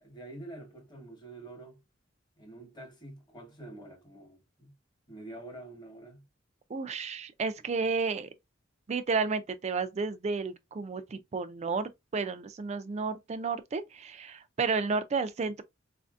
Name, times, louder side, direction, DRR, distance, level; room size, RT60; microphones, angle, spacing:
voice 1, 0.0-1.8 2.4-4.7 5.1-6.2, right 2 dB, 25° left, 1.1 m, -47 dB
voice 2, 6.7-8.3 8.9-15.6, right 4 dB, 35° right, 0.4 m, -32 dB
4.1 x 2.6 x 2.3 m
head